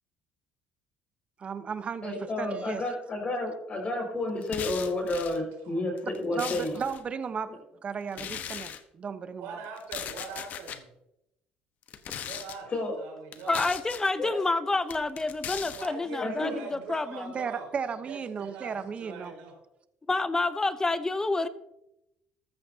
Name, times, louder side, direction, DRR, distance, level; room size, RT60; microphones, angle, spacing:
voice 1, 1.4-2.8 6.3-7.5 7.8-9.6 17.3-19.3, right 6 dB, 40° right, 11 dB, 1.0 m, -35 dB
voice 2, 2.0-6.8 12.7-12.9 14.2-14.3 16.2-16.5, left 2 dB, 40° left, 1 dB, 5.4 m, -31 dB
sound 1, 4.4-5.4 6.0-7.0 8.1-8.8 9.8-10.8 11.8-12.6 13.3-14.1 14.9-15.9, left 9 dB, 60° left, 1.1 m, -38 dB
voice 3, 5.2-5.8 6.2-6.3 9.4-10.9 12.3-12.7 13.0-13.6 14.2-14.4 15.7-17.6 18.1-19.5, right 4 dB, 90° right, 1 dB, 4.7 m, -42 dB
voice 4, 13.5-17.3 20.1-21.5, left 3 dB, 20° left, 14 dB, 0.7 m, -28 dB
14.0 x 13.5 x 2.8 m, 0.86 s
cardioid pair, 100°, 3 cm